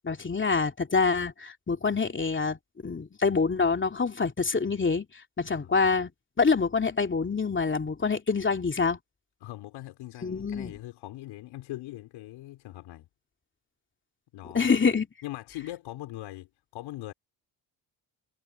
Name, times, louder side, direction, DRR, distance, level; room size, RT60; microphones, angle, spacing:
voice 1, 0.0-2.6 2.8-5.1 5.4-6.1 6.4-9.0 10.2-10.7 14.5-15.1, left 4 dB, 25° left, 2.7 m, -26 dB
voice 2, 9.4-13.1 14.3-14.7 15.2-17.1, left 16 dB, 85° left, 4.4 m, -41 dB
cardioid pair, 80°, 46 cm